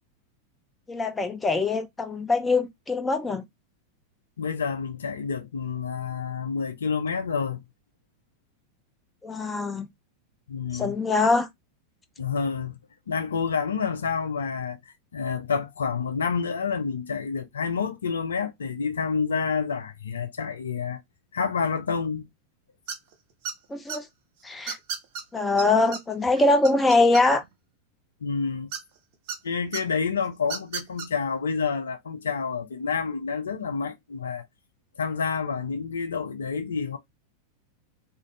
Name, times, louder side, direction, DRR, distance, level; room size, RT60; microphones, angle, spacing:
voice 1, 0.9-3.4 9.2-9.9 10.7-11.5 23.7-24.1 24.4-24.8 25.3-27.4, left 3 dB, 15° left, 0.5 m, -23 dB
voice 2, 4.4-7.6 10.5-10.9 12.2-12.8 13.1-14.8 15.1-21.0 21.3-22.3 28.2-28.7 29.4-34.5 35.0-37.0, left 5 dB, 70° left, 0.5 m, -28 dB
sound 1, 22.9-23.1 23.4-24.0 24.7-25.2 25.6-25.7 25.9-26.0 26.4-27.5 28.7-29.4 29.7-29.8 30.4-31.1, right 6 dB, 45° right, 0.8 m, -33 dB
2.5 x 2.4 x 3.1 m
figure-of-eight pair, 90°, 0 cm